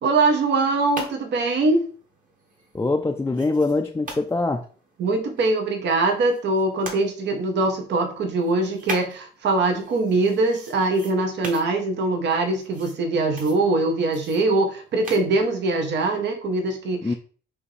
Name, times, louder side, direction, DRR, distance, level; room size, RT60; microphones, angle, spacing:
voice 1, 0.0-1.8 5.0-17.1, right 2 dB, 65° right, 0.9 m, -22 dB
sound 1, 0.6-7.0 7.5-16.0, right 2 dB, 45° right, 1.4 m, -42 dB
voice 2, 2.7-4.6 17.0-17.1, left 3 dB, 15° left, 0.4 m, -23 dB
4.9 x 2.9 x 3.2 m
cardioid pair, 90°, 20 cm